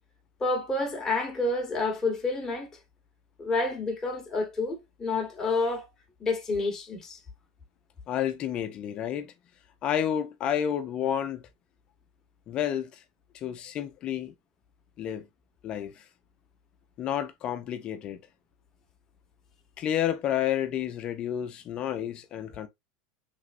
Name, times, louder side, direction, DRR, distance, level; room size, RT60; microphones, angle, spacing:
voice 1, 0.4-2.7 3.4-5.8 6.2-7.2, left 3 dB, 20° left, 1.1 m, -29 dB
voice 2, 8.1-9.3 9.8-11.4 12.5-13.0 13.3-14.3 15.0-15.3 15.6-16.0 17.0-18.2 19.8-22.7, left 10 dB, 40° left, 0.5 m, -30 dB
3.3 x 3.0 x 2.5 m
hypercardioid pair, 95°, 3 cm